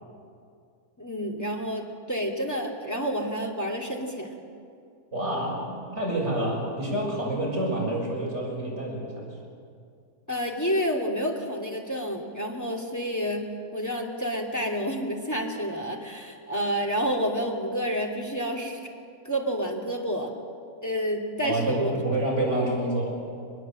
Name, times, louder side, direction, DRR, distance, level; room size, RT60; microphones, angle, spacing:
voice 1, 1.0-4.4 10.3-18.9 19.2-20.3 20.8-22.0, equal, 10° left, 1 dB, 2.6 m, -29 dB
voice 2, 5.1-9.3 21.4-23.1, right 1 dB, 40° right, -3 dB, 6.7 m, -28 dB
23.0 x 21.0 x 7.8 m, 2.4 s
omnidirectional pair, 1.8 m